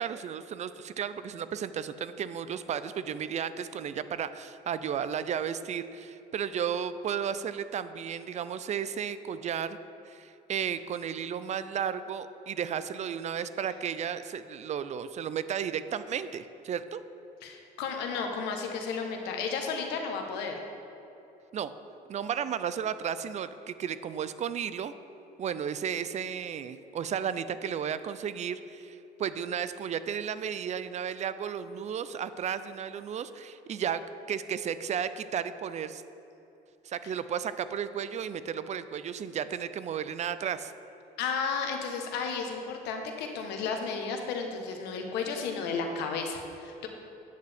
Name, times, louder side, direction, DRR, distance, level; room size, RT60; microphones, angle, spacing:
voice 1, 0.0-9.8 10.0-17.0 21.5-21.7 22.1-24.9 25.4-34.0 34.3-36.0 36.8-40.7, right 8 dB, 45° right, 13 dB, 0.4 m, -33 dB
voice 2, 17.4-20.5 41.2-46.9, left 5 dB, 90° left, 3 dB, 1.1 m, -33 dB
9.2 x 8.9 x 3.5 m, 3.0 s
cardioid pair, 110°, 17 cm